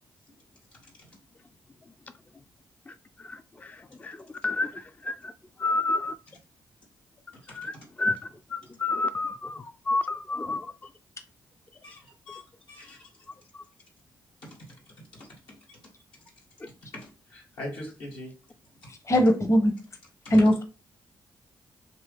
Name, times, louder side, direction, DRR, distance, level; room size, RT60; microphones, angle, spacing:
voice 1, 2.9-5.3 5.6-6.2 7.5-10.9 13.5-13.6, left 3 dB, 20° left, 0.3 m, -31 dB
voice 2, 11.8-13.1 14.4-14.6 15.1-15.8 16.9-18.4 19.3-19.4 20.2-20.5, left 1 dB, 85° left, 1.6 m, -42 dB
voice 3, 19.1-19.7 20.3-20.6, equal, 35° left, 0.8 m, -19 dB
2.8 x 2.7 x 3.4 m
supercardioid pair, 45°, 8 cm